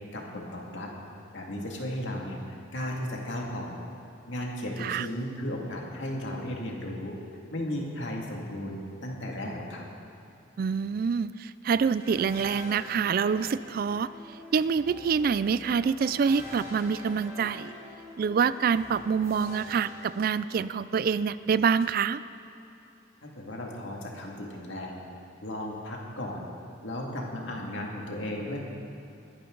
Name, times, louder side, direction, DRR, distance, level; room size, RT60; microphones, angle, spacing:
voice 1, 0.1-0.9 1.3-2.4 2.7-3.8 4.3-7.2 7.5-9.9 23.2-25.0 25.4-26.5 26.8-28.6, left 1 dB, 70° left, -1 dB, 2.3 m, -35 dB
voice 2, 10.6-14.1 14.5-17.7 18.2-22.2, right 6 dB, 50° right, 16 dB, 0.3 m, -26 dB
sound 1, 12.0-20.9, left 1 dB, 15° right, 3.6 m, -46 dB
21.0 x 11.0 x 3.9 m, 2.8 s
head